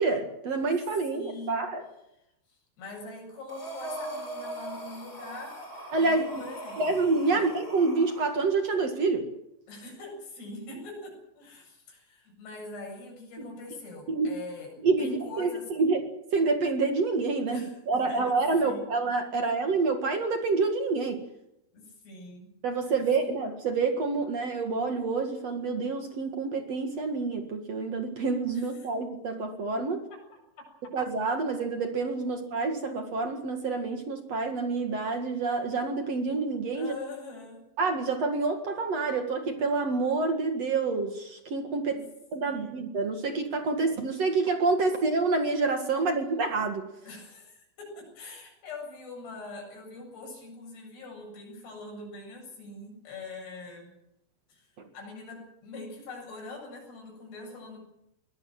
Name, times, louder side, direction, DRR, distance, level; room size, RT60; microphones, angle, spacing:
voice 1, 0.0-1.8 5.9-6.3 6.8-9.2 13.4-13.5 14.1-14.4 14.8-15.5 15.8-16.0 16.3-21.2 22.6-30.0 30.9-36.9 37.8-42.0 42.3-46.9, right 3 dB, 50° right, 6 dB, 2.0 m, -27 dB
voice 2, 1.1-1.6 2.5-5.6 6.0-6.8 7.3-7.4 9.7-14.7 15.0-15.7 17.5-18.8 21.7-22.5 28.5-28.9 30.1-30.4 30.8-30.9 36.7-37.6 41.9-42.1 42.4-42.8 47.1-53.9 54.5-54.7 54.9-57.8, left 3 dB, 55° left, 0 dB, 9.8 m, -43 dB
Breathing, 3.5-8.4, right 1 dB, 15° left, 3.8 m, -40 dB
23.0 x 19.5 x 7.7 m, 0.82 s
omnidirectional pair, 5.7 m